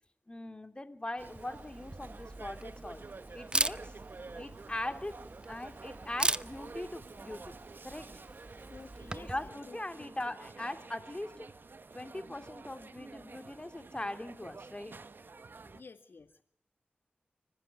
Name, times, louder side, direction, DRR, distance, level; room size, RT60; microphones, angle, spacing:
voice 1, 0.3-3.0 3.3-3.9 4.3-5.2 5.5-7.6 7.8-8.1 9.2-11.5 11.9-15.0, left 1 dB, 25° left, 8 dB, 2.7 m, -40 dB
Camera, 1.2-9.5, right 1 dB, 25° right, 0.8 m, -39 dB
sound 1, 1.2-15.8, right 4 dB, 65° right, 1.3 m, -50 dB
voice 2, 8.7-10.1 15.7-16.4, left 4 dB, 70° left, 8 dB, 1.9 m, -52 dB
25.5 x 15.0 x 9.6 m, 0.68 s
cardioid pair, 40°, 4 cm